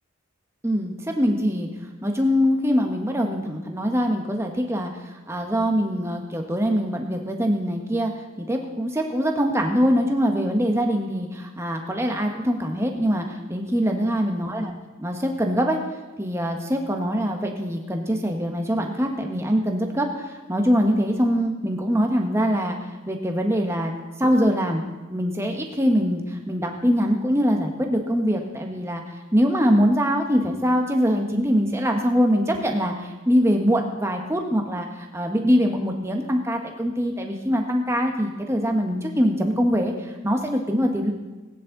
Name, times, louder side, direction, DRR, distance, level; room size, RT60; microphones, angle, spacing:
voice 1, 0.6-1.7 2.0-8.1 8.4-14.7 15.0-15.8 16.2-22.8 23.1-23.9 24.2-24.8 25.1-41.1, equal, 15° right, 3 dB, 1.3 m, -23 dB
19.0 x 9.9 x 4.0 m, 1.2 s
head